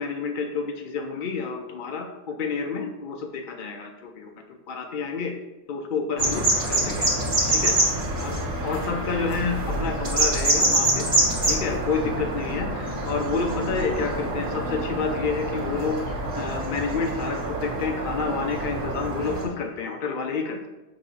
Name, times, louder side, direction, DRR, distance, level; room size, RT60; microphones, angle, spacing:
voice 1, 0.0-4.3 4.7-5.3 5.7-7.1 7.5-7.8 8.2-11.1 11.4-16.0 16.4-20.7, left 5 dB, 60° left, 2 dB, 0.5 m, -29 dB
sound 1, 6.2-19.4, right 1 dB, 45° right, 2.1 m, -26 dB
7.7 x 2.9 x 5.4 m, 1.0 s
omnidirectional pair, 1.5 m